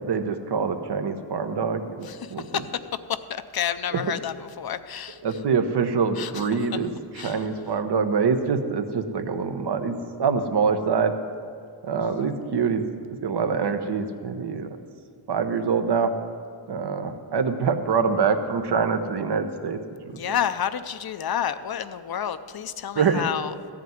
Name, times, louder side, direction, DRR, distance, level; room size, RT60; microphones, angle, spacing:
voice 1, 0.0-2.6 5.2-6.9 7.2-11.1 11.8-12.8 13.1-14.7 15.3-16.1 16.7-19.8 22.9-23.2, right 5 dB, 60° right, 8 dB, 1.0 m, -25 dB
voice 2, 2.0-2.7 3.1-5.4 6.2-6.6 7.1-7.5 12.0-12.3 20.1-23.5, left 9 dB, 55° left, 12 dB, 0.6 m, -30 dB
14.0 x 5.0 x 9.4 m, 2.3 s
cardioid pair, 85°, 46 cm